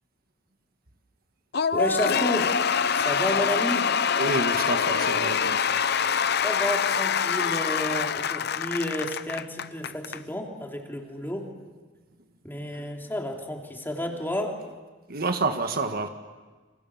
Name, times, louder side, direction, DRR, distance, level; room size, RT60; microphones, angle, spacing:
Cheering / Applause / Crowd, 1.5-10.2, left 7 dB, 60° left, 0.8 m, -25 dB
voice 1, 1.7-2.5 2.9-3.9 6.4-11.5 12.4-14.6, left 1 dB, 10° left, 2 dB, 3.2 m, -31 dB
voice 2, 4.2-5.7 5.9-6.3 15.1-16.1, right 3 dB, 55° right, 6 dB, 1.6 m, -29 dB
29.5 x 26.0 x 7.3 m, 1.3 s
head